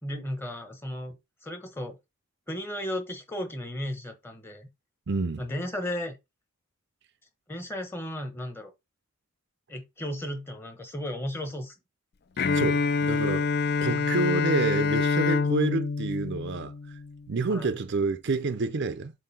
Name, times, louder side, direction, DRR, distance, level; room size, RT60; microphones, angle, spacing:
voice 1, 0.0-1.2 1.4-2.0 2.5-4.7 5.4-6.2 7.5-8.7 9.7-11.7 17.5-17.7, left 1 dB, 10° left, 1.1 m, -34 dB
voice 2, 5.1-5.4 12.5-13.5 13.8-16.7 17.3-19.1, right 3 dB, 50° right, 0.5 m, -28 dB
Bowed string instrument, 12.4-17.2, left 4 dB, 45° left, 0.5 m, -26 dB
7.5 x 2.7 x 5.6 m
head